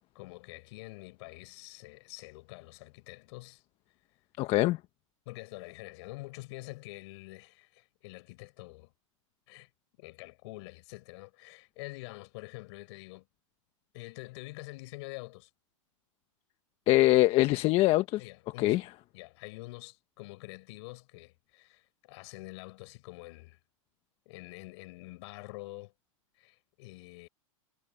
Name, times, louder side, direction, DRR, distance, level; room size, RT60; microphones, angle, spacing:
voice 1, 0.1-3.6 5.2-8.9 9.5-9.7 10.0-13.3 13.9-15.5 17.4-17.7 18.2-18.8 19.1-23.6 24.2-25.9 26.4-27.3, left 23 dB, 55° left, 7.9 m, -46 dB
voice 2, 4.4-4.8 16.9-18.2 18.6-18.8, left 18 dB, 35° left, 1.0 m, -23 dB
hypercardioid pair, 130°, 17 cm